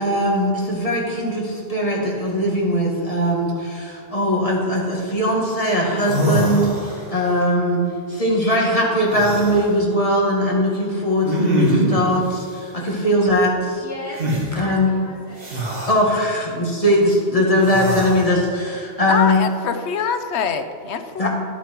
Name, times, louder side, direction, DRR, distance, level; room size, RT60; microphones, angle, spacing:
voice 1, 0.0-7.8 8.1-13.8 14.6-14.9 15.9-19.4 21.2-21.3, equal, 35° left, -2 dB, 1.9 m, -20 dB
sound 1, 5.7-5.8 6.0-7.2 9.0-9.6 11.2-12.1 14.2-14.4 15.4-16.0 17.5-18.3, equal, 60° right, 2.1 m, -23 dB
voice 2, 8.1-8.4 13.8-15.5 16.4-16.5, equal, 15° right, -3 dB, 1.3 m, -36 dB
voice 3, 19.1-21.3, left 6 dB, 90° left, 8 dB, 1.0 m, -24 dB
11.5 x 8.4 x 4.5 m, 2.2 s
omnidirectional pair, 1.1 m